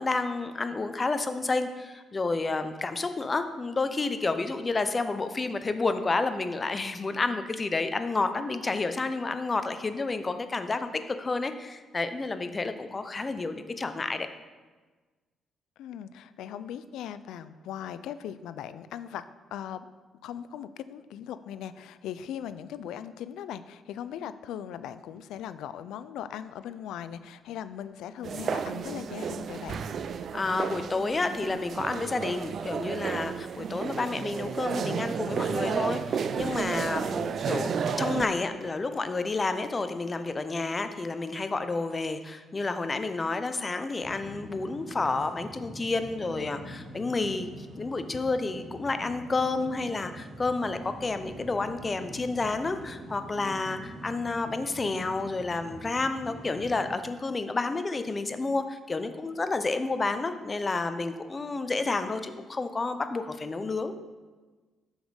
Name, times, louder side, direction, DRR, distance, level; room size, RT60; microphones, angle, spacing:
voice 1, 0.0-14.3 30.3-63.9, left 3 dB, 30° left, 9 dB, 0.5 m, -30 dB
voice 2, 15.8-19.2 19.5-19.9 20.2-29.9, left 9 dB, 85° left, 14 dB, 0.3 m, -39 dB
sound 1, 28.2-38.3, right 6 dB, 55° right, 0.3 m, -32 dB
sound 2, 44.0-57.0, right 1 dB, 40° right, 1.2 m, -45 dB
6.3 x 5.1 x 4.7 m, 1.3 s
cardioid pair, 90°, 0 cm